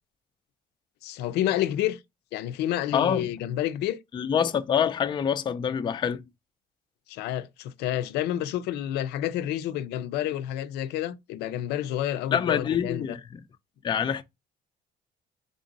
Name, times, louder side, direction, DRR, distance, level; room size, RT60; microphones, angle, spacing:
voice 1, 1.0-2.0 2.3-4.0 7.1-13.2, left 12 dB, 85° left, 0.5 m, -29 dB
voice 2, 2.9-3.3 4.1-6.2 12.3-13.4 13.8-14.2, left 8 dB, 25° left, 0.4 m, -26 dB
3.7 x 2.6 x 3.9 m
cardioid pair, 110°, 17 cm